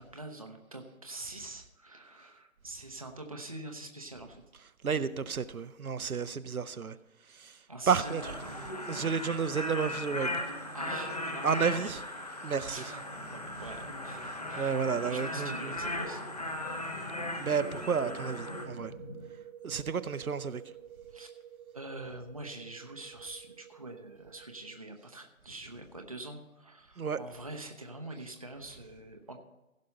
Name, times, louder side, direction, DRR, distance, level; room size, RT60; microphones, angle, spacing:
voice 1, 0.0-4.4 7.7-8.5 10.7-11.9 12.7-16.2 21.1-21.3 21.7-29.4, right 2 dB, 25° right, 3 dB, 0.7 m, -45 dB
voice 2, 4.8-7.0 7.3-7.6 7.9-8.4 8.9-10.4 11.4-12.0 12.4-12.8 14.6-15.8 17.4-18.9 19.6-20.6 27.0-27.2, right 6 dB, 85° right, 12 dB, 0.8 m, -31 dB
sound 1, 7.9-18.7, left 1 dB, 30° left, 0.8 m, -38 dB
sound 2, 13.1-19.3, left 1 dB, 50° left, 3.7 m, -49 dB
sound 3, 17.9-24.8, right 9 dB, 60° right, 1.0 m, -50 dB
16.0 x 5.3 x 5.4 m, 1.0 s
figure-of-eight pair, 160°, 42 cm